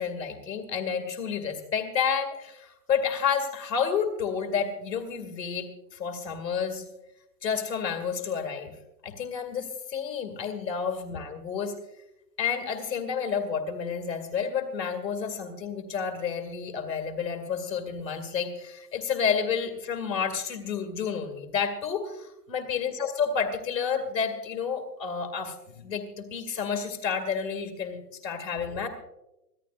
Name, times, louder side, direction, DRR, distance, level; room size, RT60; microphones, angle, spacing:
voice 1, 0.0-6.9 7.4-8.7 9.0-11.7 12.4-28.9, left 6 dB, 85° left, 6 dB, 2.4 m, -30 dB
25.0 x 15.5 x 2.5 m, 0.93 s
hypercardioid pair, 180°, 49 cm